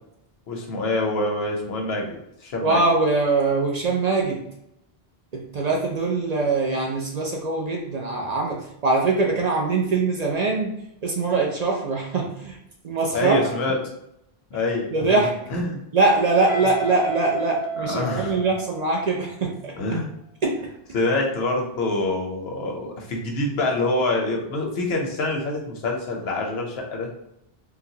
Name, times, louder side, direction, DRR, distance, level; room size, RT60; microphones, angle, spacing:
voice 1, 0.5-2.1 2.4-2.8 13.1-13.8 14.5-15.2 15.5-15.8 17.8-18.4 19.8-20.1 20.9-27.1, left 2 dB, 80° left, 1 dB, 0.9 m, -25 dB
voice 2, 2.6-4.5 5.3-10.8 11.0-12.6 12.8-13.4 14.9-15.4 15.9-19.8 20.4-20.6, right 3 dB, 55° right, 0 dB, 0.5 m, -22 dB
Guitar, 16.5-19.3, right 4 dB, 45° left, 0.4 m, -33 dB
3.9 x 2.1 x 2.7 m, 0.79 s
omnidirectional pair, 1.0 m